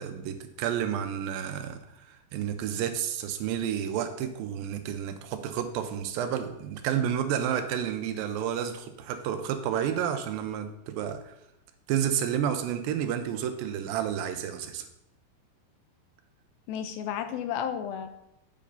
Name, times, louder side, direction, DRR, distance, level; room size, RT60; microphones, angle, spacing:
voice 1, 0.0-1.8 2.1-11.3 11.9-14.9, right 9 dB, 85° right, 8 dB, 2.4 m, -30 dB
voice 2, 16.7-18.1, left 8 dB, 90° left, 8 dB, 2.5 m, -32 dB
8.5 x 8.5 x 2.7 m, 0.83 s
omnidirectional pair, 4.3 m